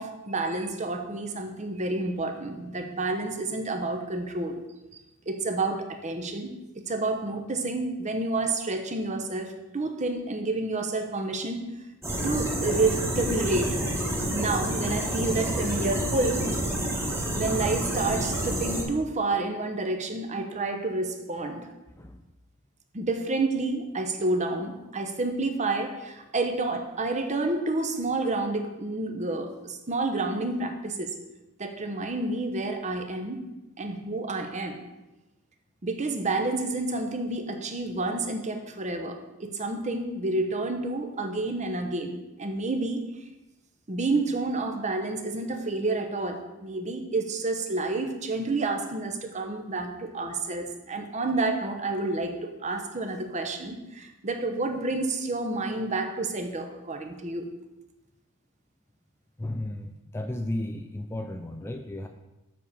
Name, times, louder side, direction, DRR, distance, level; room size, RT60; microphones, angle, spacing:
voice 1, 0.0-4.6 5.3-6.5 6.8-11.7 12.2-13.8 14.3-16.6 17.3-21.7 22.9-31.1 31.6-33.4 33.8-34.8 35.8-43.1 43.9-57.4, right 2 dB, 30° right, 5 dB, 0.8 m, -29 dB
sound 1, 12.0-18.8, right 1 dB, 10° right, 1.3 m, -28 dB
voice 2, 59.4-62.1, left 1 dB, 10° left, 5 dB, 0.3 m, -34 dB
7.4 x 4.2 x 6.8 m, 1.0 s
head